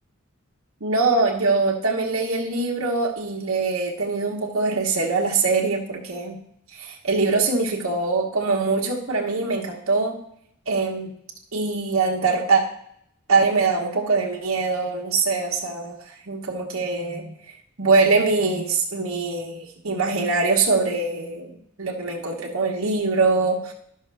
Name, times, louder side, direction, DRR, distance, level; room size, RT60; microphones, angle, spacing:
voice 1, 0.8-6.4 6.7-10.2 10.7-11.1 11.5-12.6 13.3-17.3 17.8-23.7, right 3 dB, 75° right, -2 dB, 1.1 m, -23 dB
12.0 x 5.6 x 3.4 m, 0.71 s
head